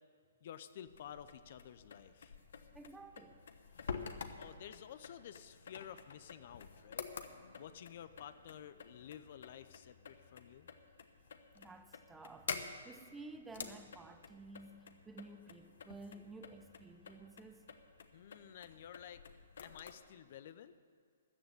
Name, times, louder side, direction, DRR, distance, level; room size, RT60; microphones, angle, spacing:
voice 1, 0.4-2.3 4.4-7.0 7.6-10.7 18.1-19.2 19.6-20.8, left 9 dB, 55° left, 0.6 m, -52 dB
sound 1, 0.9-19.9, left 5 dB, 70° left, 1.0 m, -50 dB
voice 2, 2.7-3.5 11.5-17.7, right 3 dB, 10° right, 0.7 m, -53 dB
13.5 x 7.1 x 9.2 m
hypercardioid pair, 135°, 0 cm